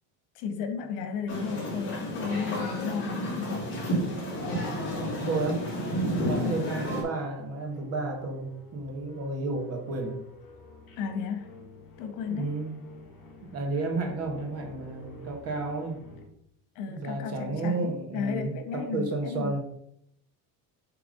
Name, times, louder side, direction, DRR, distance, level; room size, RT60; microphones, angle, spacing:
voice 1, 0.3-3.7 6.3-6.7 11.0-11.5 12.0-12.6 16.7-19.5, left 6 dB, 80° left, 7 dB, 1.3 m, -34 dB
sound 1, 1.3-7.0, equal, 25° left, 3.1 m, -31 dB
voice 2, 5.2-5.7 6.1-10.2 12.3-12.8 13.5-16.1 16.9-19.6, right 3 dB, 35° right, 3 dB, 1.3 m, -32 dB
sound 2, 6.1-16.3, left 3 dB, 55° left, 3.0 m, -51 dB
7.6 x 3.5 x 5.1 m, 0.72 s
cardioid pair, 170°, 41 cm